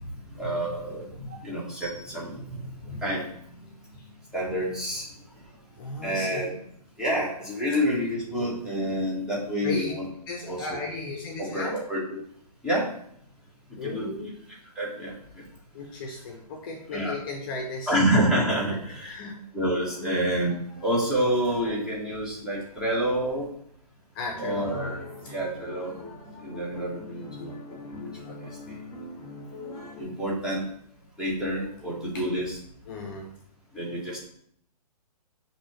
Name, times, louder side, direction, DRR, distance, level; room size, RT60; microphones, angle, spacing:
voice 1, 0.3-3.3 4.3-5.1 6.0-6.5 7.0-10.1 10.5-10.7 11.4-12.0 12.6-12.9 13.8-14.1 14.8-15.1 16.9-17.2 17.9-19.2 19.5-20.5 20.8-23.5 24.4-24.9 25.3-25.9 26.4-27.5 27.9-28.1 28.7-28.8 30.0-30.7 31.2-32.6 33.7-34.2, equal, 5° right, -6 dB, 1.1 m, -28 dB
voice 2, 5.8-6.5 9.6-9.9 10.3-11.7 13.8-14.3 15.7-18.0 18.9-19.4 20.0-20.2 24.1-25.0 32.1-32.2 32.9-33.3, left 3 dB, 35° left, 1 dB, 0.7 m, -35 dB
sound 1, 24.3-30.0, left 2 dB, 15° left, 1.1 m, -41 dB
5.9 x 2.8 x 3.0 m, 0.67 s
hypercardioid pair, 140°, 20 cm